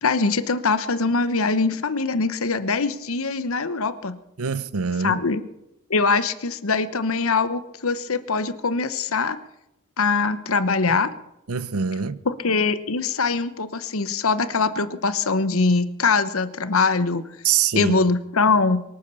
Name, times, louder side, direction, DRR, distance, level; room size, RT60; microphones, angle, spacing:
voice 1, 0.0-4.2 5.0-5.4 5.9-9.4 10.0-11.1 12.4-17.2 17.7-18.8, left 4 dB, 75° left, 1.0 m, -22 dB
voice 2, 4.4-5.2 11.5-12.2 17.4-18.0, right 6 dB, 85° right, 0.8 m, -24 dB
23.0 x 8.8 x 7.0 m
head